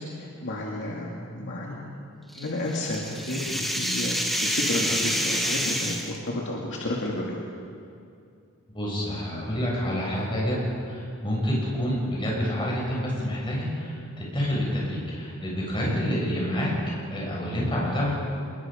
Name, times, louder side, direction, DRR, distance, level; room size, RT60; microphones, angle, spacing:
voice 1, 0.4-1.1 1.4-2.0 2.3-4.1 4.4-7.4 15.8-16.0, left 1 dB, 55° left, -3 dB, 2.4 m, -31 dB
sound 1, 2.3-6.2, equal, ahead, 1.8 m, -28 dB
voice 2, 8.7-10.6 10.9-16.7 17.1-18.1, equal, 20° left, -4 dB, 7.1 m, -28 dB
27.0 x 21.5 x 5.3 m, 2.5 s
head